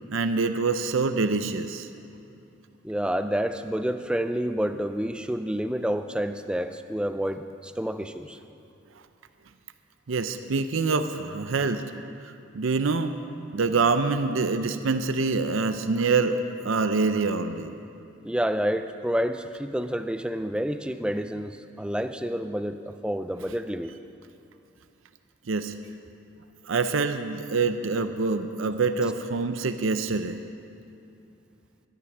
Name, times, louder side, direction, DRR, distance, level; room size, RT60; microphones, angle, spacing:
voice 1, 0.1-1.9 10.1-11.8 12.5-13.1 13.5-16.4 16.6-17.7 25.5-25.7 26.7-30.4, right 4 dB, 75° right, 9 dB, 0.6 m, -25 dB
voice 2, 2.8-8.4 18.2-24.0, equal, 5° right, 8 dB, 0.4 m, -29 dB
12.5 x 12.0 x 6.0 m, 2.7 s
head